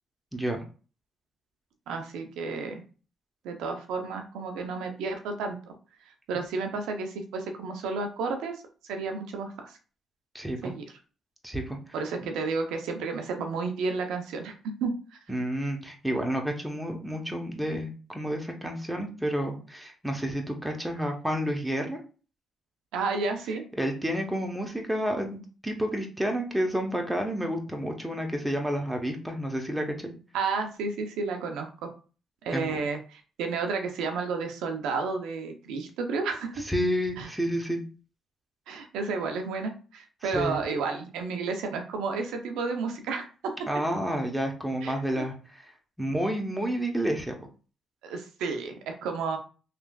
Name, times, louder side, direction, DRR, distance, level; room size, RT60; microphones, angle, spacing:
voice 1, 0.3-0.6 10.3-10.7 11.4-11.8 15.3-22.0 23.8-30.1 32.5-32.8 36.6-37.8 40.2-40.6 43.7-45.7 46.0-47.3, equal, 5° right, 2 dB, 0.8 m, -30 dB
voice 2, 1.9-2.8 3.4-5.6 6.3-8.6 8.8-9.8 10.6-10.8 11.9-14.5 14.8-14.9 22.9-23.6 30.3-31.9 32.4-36.6 37.2-37.3 38.7-43.5 44.8-45.2 48.0-49.4, right 4 dB, 85° right, 5 dB, 0.6 m, -31 dB
3.3 x 2.4 x 2.3 m, 0.37 s
supercardioid pair, 65°, 0 cm